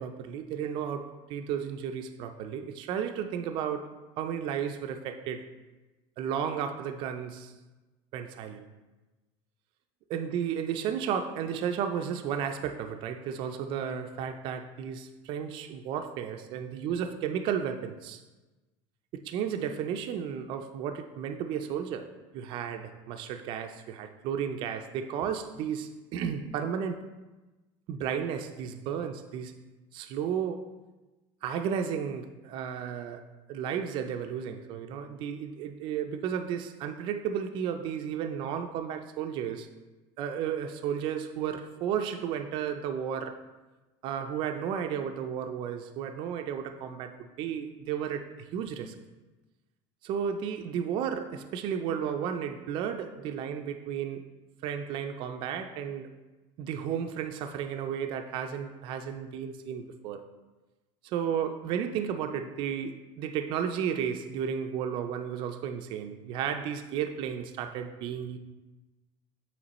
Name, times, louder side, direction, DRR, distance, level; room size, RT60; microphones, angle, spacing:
voice 1, 0.0-3.9 4.2-5.5 6.2-7.5 8.1-8.6 10.1-18.2 19.1-27.1 27.9-29.5 29.9-30.7 31.4-33.2 33.5-39.7 40.2-43.4 44.0-49.0 50.0-54.2 54.6-56.1 56.6-60.2 61.0-68.4, right 8 dB, 40° right, 6 dB, 0.3 m, -33 dB
7.9 x 3.0 x 4.1 m, 1.2 s
cardioid pair, 165°, 13 cm